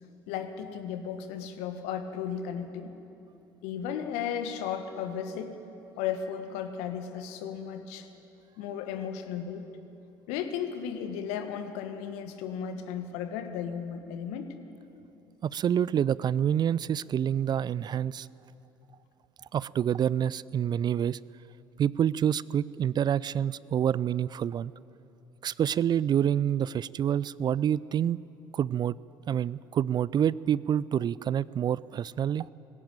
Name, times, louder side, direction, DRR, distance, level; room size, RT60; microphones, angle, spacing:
voice 1, 0.3-2.9 3.6-5.6 6.0-8.1 8.6-9.7 10.3-14.5, left 8 dB, 65° left, 8 dB, 1.6 m, -35 dB
voice 2, 15.4-18.3 19.5-21.2 21.8-24.7 25.4-28.2 28.5-29.0 29.3-32.5, right 9 dB, 35° right, 21 dB, 0.4 m, -27 dB
19.0 x 16.0 x 8.9 m, 2.9 s
figure-of-eight pair, 60°, 12 cm